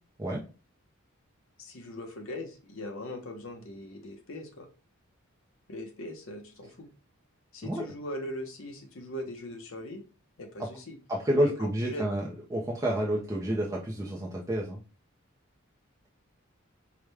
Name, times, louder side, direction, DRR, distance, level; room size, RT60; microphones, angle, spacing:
voice 1, 1.6-4.7 5.7-6.9 7.5-10.0 10.4-11.0 11.4-12.1, left 1 dB, 60° left, 4 dB, 0.8 m, -40 dB
voice 2, 11.1-14.8, right 1 dB, 15° right, -3 dB, 0.5 m, -29 dB
4.8 x 2.2 x 3.3 m, 0.34 s
head